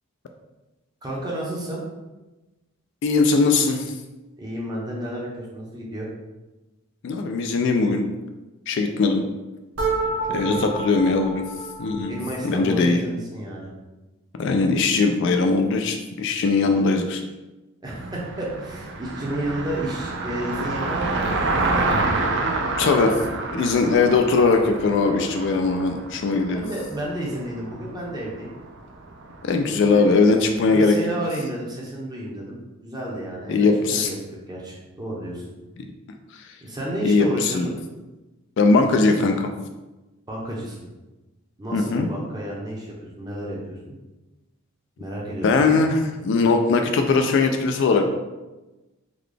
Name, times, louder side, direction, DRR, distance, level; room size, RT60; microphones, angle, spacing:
voice 1, 1.0-1.8 4.4-6.1 10.2-10.6 12.1-13.7 17.8-21.8 26.3-28.5 29.9-30.1 30.6-34.1 34.5-35.4 36.6-37.7 40.3-40.8 41.6-42.9 43.2-43.8 45.0-45.7, right 1 dB, 20° right, -4 dB, 0.7 m, -31 dB
voice 2, 3.0-3.8 7.0-8.0 8.7-9.2 10.3-11.4 11.8-12.2 12.4-13.0 14.3-17.2 22.7-23.2 23.5-26.6 29.4-31.0 33.5-34.1 37.0-37.7 38.6-39.5 41.7-42.1 45.4-48.1, left 4 dB, 55° left, 5 dB, 0.3 m, -20 dB
sound 1, 9.8-12.7, right 3 dB, 85° right, 0.8 m, -29 dB
Car passing by, 17.9-30.2, right 3 dB, 55° right, 0.4 m, -28 dB
3.8 x 2.3 x 3.2 m, 1.1 s
head